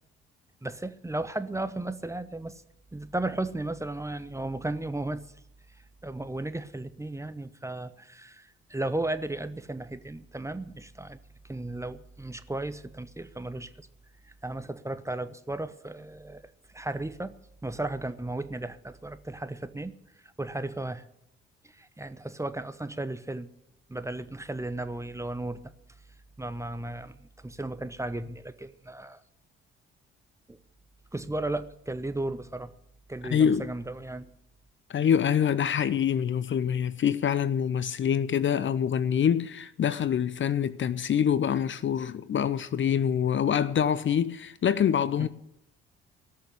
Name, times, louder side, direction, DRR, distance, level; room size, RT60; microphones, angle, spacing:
voice 1, 0.6-2.6 2.9-5.3 6.0-11.2 11.4-13.9 14.2-16.4 16.7-17.3 17.6-19.9 20.2-21.1 21.6-23.5 23.9-25.7 26.4-29.2 30.5-30.6 31.1-32.7 33.1-34.3 45.2-45.3, right 2 dB, 10° right, 1.0 m, -35 dB
voice 2, 33.3-33.7 34.9-45.3, left 8 dB, 40° left, 0.7 m, -25 dB
17.5 x 6.7 x 9.6 m
hypercardioid pair, 50°, 30 cm